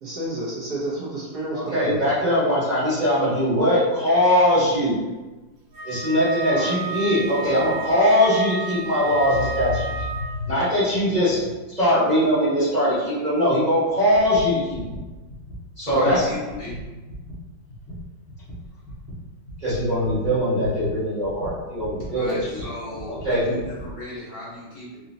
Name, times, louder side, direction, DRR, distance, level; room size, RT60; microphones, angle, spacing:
voice 1, 0.0-2.0 6.5-6.7 22.5-22.6, right 2 dB, 60° right, -7 dB, 1.3 m, -30 dB
voice 2, 1.5-5.0 5.8-11.4 11.7-14.8 15.8-16.2 19.6-22.4 23.1-23.5, equal, 25° right, -11 dB, 1.1 m, -21 dB
Wind instrument woodwind instrument, 5.7-10.4, right 4 dB, 80° right, 1.3 m, -32 dB
sound 1, 13.9-24.0, equal, 10° left, 0.7 m, -39 dB
voice 3, 15.8-16.7 22.1-25.0, left 2 dB, 55° left, -8 dB, 1.4 m, -35 dB
3.9 x 2.8 x 2.7 m, 1.2 s
omnidirectional pair, 2.1 m